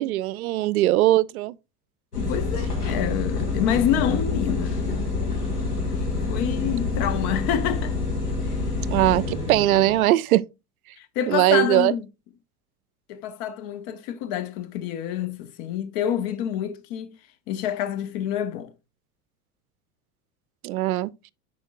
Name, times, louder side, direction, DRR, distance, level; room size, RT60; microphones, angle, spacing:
voice 1, 0.0-1.5 8.9-10.4 11.3-11.9 20.6-21.1, right 16 dB, 70° right, 0.5 m, -20 dB
sound 1, 2.1-10.1, left 3 dB, 90° left, 2.0 m, -27 dB
voice 2, 2.2-4.9 5.9-7.9 9.7-9.8 11.0-12.0 13.1-17.2 17.5-18.7, left 10 dB, 50° left, 0.9 m, -27 dB
10.5 x 4.5 x 2.3 m
figure-of-eight pair, 80°, 45 cm